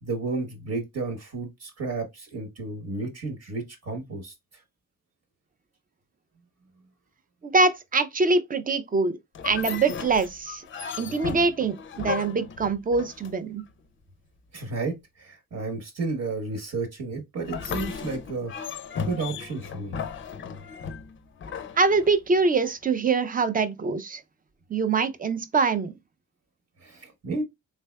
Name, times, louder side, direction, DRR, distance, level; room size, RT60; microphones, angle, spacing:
voice 1, 0.0-4.3 14.5-18.8 19.0-20.0 20.5-20.6 26.8-27.4, right 3 dB, 55° right, 1.2 m, -32 dB
voice 2, 7.4-9.2 9.4-10.6 11.0-13.6 21.8-24.2 24.7-25.9, right 4 dB, 30° right, 0.4 m, -24 dB
sound 1, 9.4-13.7 17.4-22.5, left 6 dB, 40° left, 0.5 m, -36 dB
3.4 x 3.3 x 2.2 m
cardioid pair, 130°, 31 cm